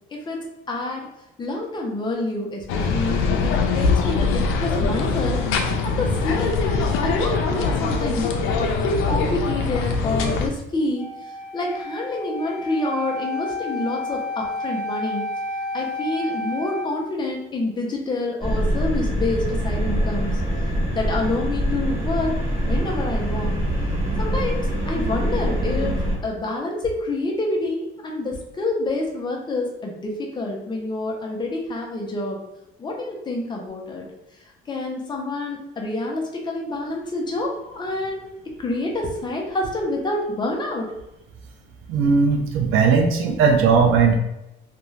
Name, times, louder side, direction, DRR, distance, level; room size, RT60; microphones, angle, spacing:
voice 1, 0.7-1.1 1.4-5.4 5.8-11.1 11.5-15.2 15.7-20.4 20.9-22.3 22.6-23.6 24.2-32.4 32.8-34.1 34.7-38.3 38.6-40.9, left 2 dB, 20° left, -1 dB, 0.6 m, -27 dB
sound 1, 2.7-10.5, left 4 dB, 75° left, 0.5 m, -22 dB
Wind instrument woodwind instrument, 11.0-16.9, left 2 dB, 5° right, 0.9 m, -30 dB
sound 2, 18.4-26.2, equal, 25° right, 1.2 m, -24 dB
voice 2, 41.9-44.2, right 5 dB, 75° right, 4 dB, 0.5 m, -18 dB
2.6 x 2.2 x 3.1 m, 0.88 s
cardioid pair, 140°, 21 cm